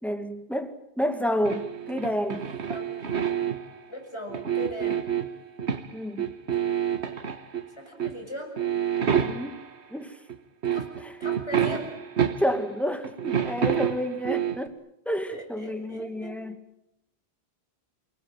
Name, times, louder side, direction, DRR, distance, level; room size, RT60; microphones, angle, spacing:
voice 1, 0.0-2.5 5.9-6.3 9.2-9.6 9.9-10.2 11.0-11.1 12.4-14.7 15.1-16.6, equal, ahead, 8 dB, 2.0 m, -30 dB
sound 1, 1.4-3.8 4.3-5.9 6.2-7.7 8.0-8.2 8.6-9.7 10.3-10.4 10.6-12.7 13.0-14.7, right 8 dB, 85° right, 1.8 m, -28 dB
voice 2, 3.9-5.0 7.8-8.5 10.7-10.9 11.2-11.9 15.3-16.4, equal, 25° left, 2 dB, 6.8 m, -38 dB
29.5 x 20.0 x 9.1 m, 0.84 s
omnidirectional pair, 1.1 m